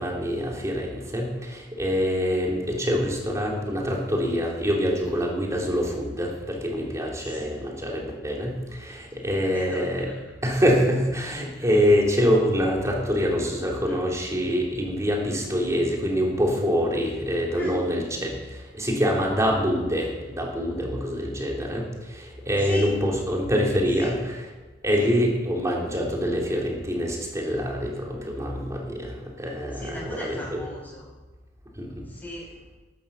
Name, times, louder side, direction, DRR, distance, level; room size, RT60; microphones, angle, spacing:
voice 1, 0.0-10.1 10.4-18.3 18.7-21.8 22.1-24.2 24.8-30.4 31.8-32.0, equal, 15° right, -1 dB, 3.3 m, -25 dB
voice 2, 7.2-7.5 9.2-10.3 11.5-11.7 13.9-14.0 14.7-14.8 17.5-17.8 22.6-22.9 24.0-24.1 25.0-25.1 29.7-31.1 32.1-32.5, left 1 dB, 10° left, -4 dB, 6.3 m, -38 dB
12.0 x 12.0 x 7.2 m, 1.2 s
head